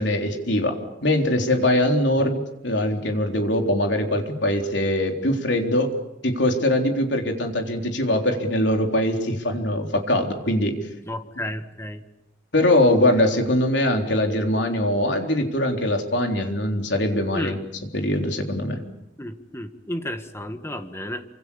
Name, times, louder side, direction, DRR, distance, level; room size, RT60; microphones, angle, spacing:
voice 1, 0.0-5.9 6.2-10.8 12.5-17.6 17.9-18.8, left 1 dB, 65° left, 3 dB, 3.8 m, -22 dB
voice 2, 11.0-12.0 17.3-17.6 19.2-21.2, left 1 dB, 15° left, 8 dB, 1.7 m, -32 dB
28.0 x 26.0 x 7.1 m, 0.85 s
head